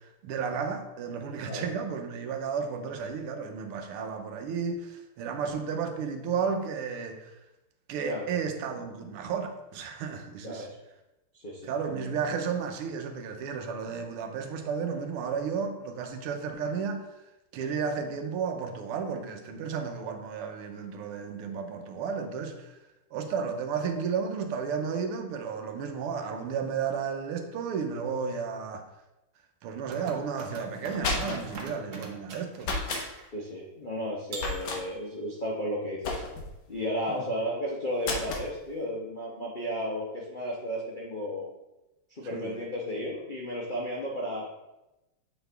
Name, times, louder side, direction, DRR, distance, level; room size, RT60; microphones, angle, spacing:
voice 1, 0.0-7.3 7.9-10.7 11.6-17.1 17.5-22.8 23.1-28.9 29.6-33.1 37.1-37.3 42.3-42.6, right 6 dB, 85° right, 6 dB, 1.6 m, -33 dB
voice 2, 10.4-10.8 11.3-11.8 33.3-36.2 36.7-41.5 42.1-44.5, equal, 85° left, -4 dB, 0.4 m, -33 dB
sound 1, 29.8-33.3 34.3-35.2, right 4 dB, 60° right, 0.8 m, -42 dB
sound 2, 30.7-31.6 32.6-33.1 34.4-34.8 36.0-36.6 38.0-38.5, left 3 dB, 60° left, 1.4 m, -32 dB
7.8 x 4.0 x 3.3 m, 0.97 s
omnidirectional pair, 2.4 m